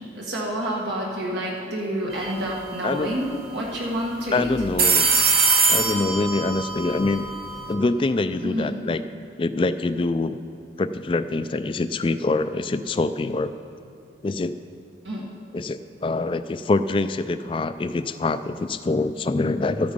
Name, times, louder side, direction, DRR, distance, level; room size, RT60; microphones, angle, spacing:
voice 1, 0.1-4.5 8.4-8.8 15.0-15.2, equal, 75° right, -3 dB, 1.6 m, -28 dB
sound 1, 2.1-2.4 2.7-2.8 4.5-7.7, right 4 dB, 50° right, 1.3 m, -22 dB
voice 2, 4.3-5.1 5.7-7.3 7.7-9.0 9.4-10.4 10.8-13.5 14.2-14.6 15.5-19.9, left 3 dB, 30° left, 12 dB, 0.3 m, -25 dB
13.0 x 8.7 x 5.3 m, 2.5 s
head